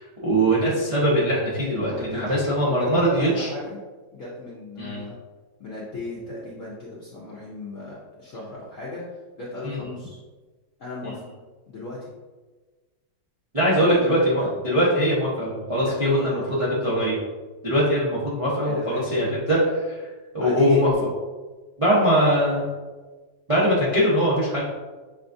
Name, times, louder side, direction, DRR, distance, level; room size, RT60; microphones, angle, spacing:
voice 1, 0.0-3.5 4.8-5.0 9.6-10.0 11.0-11.1 13.5-17.2 17.6-21.1 21.8-22.7 23.5-24.7, equal, 35° right, -8 dB, 0.5 m, -22 dB
voice 2, 1.8-3.8 4.1-5.1 5.6-9.0 9.4-10.2 10.8-11.2 11.7-12.1 13.6-14.0 14.4-14.5 15.7-16.7 18.6-19.3 20.3-20.8 23.9-24.0, left 2 dB, 65° left, -6 dB, 0.8 m, -35 dB
6.8 x 2.4 x 2.6 m, 1.3 s
omnidirectional pair, 2.2 m